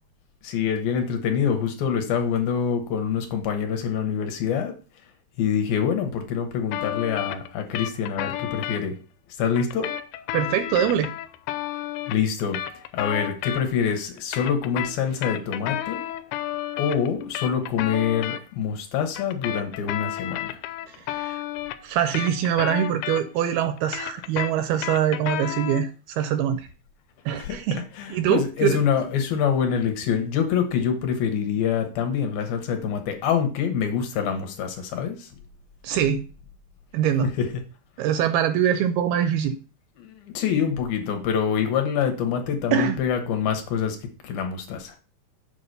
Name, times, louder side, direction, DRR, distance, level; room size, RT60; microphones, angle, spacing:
voice 1, 0.4-4.8 5.4-9.0 9.4-10.0 12.1-16.0 16.8-20.6 27.4-35.3 37.2-37.6 40.0-45.0, left 7 dB, 70° left, 5 dB, 2.7 m, -25 dB
sound 1, 6.7-8.8 9.5-13.9 14.2-18.4 19.1-23.5 23.8-25.9, left 13 dB, 90° left, 2.8 m, -32 dB
voice 2, 10.3-11.1 20.9-21.4 21.8-26.7 27.3-27.8 28.1-28.8 35.8-36.2 36.9-37.3 38.0-39.6 42.7-43.0, right 9 dB, 80° right, 10 dB, 2.3 m, -23 dB
7.3 x 4.8 x 6.6 m, 0.36 s
omnidirectional pair, 4.8 m